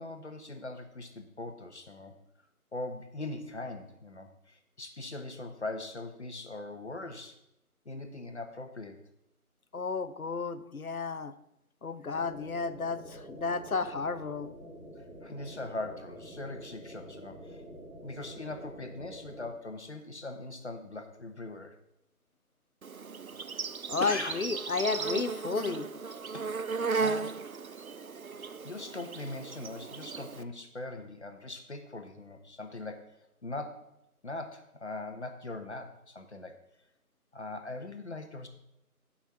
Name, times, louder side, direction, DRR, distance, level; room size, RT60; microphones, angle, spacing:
voice 1, 0.0-2.1 2.7-7.4 7.8-9.0 15.2-17.6 18.0-21.8 23.9-24.4 26.3-26.5 26.9-27.4 28.3-33.2 33.4-33.9 34.2-36.6 37.3-38.5, left 2 dB, 50° left, 6 dB, 1.1 m, -41 dB
voice 2, 9.7-11.3 11.8-14.5 23.9-25.9, left 4 dB, 65° left, 12 dB, 0.8 m, -32 dB
sound 1, 12.1-19.5, equal, 85° right, 3.0 m, -47 dB
Insect, 22.8-30.4, right 4 dB, 65° right, 0.7 m, -36 dB
11.0 x 5.6 x 5.8 m, 0.82 s
figure-of-eight pair, 160°, 45 cm